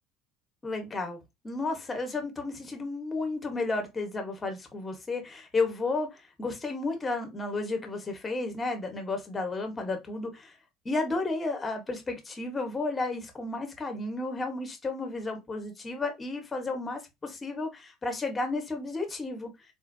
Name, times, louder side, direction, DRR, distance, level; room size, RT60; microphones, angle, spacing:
voice 1, 0.6-10.5 10.8-19.5, left 3 dB, 20° left, 1.0 m, -32 dB
3.9 x 2.5 x 2.6 m
cardioid pair, 130°, 0 cm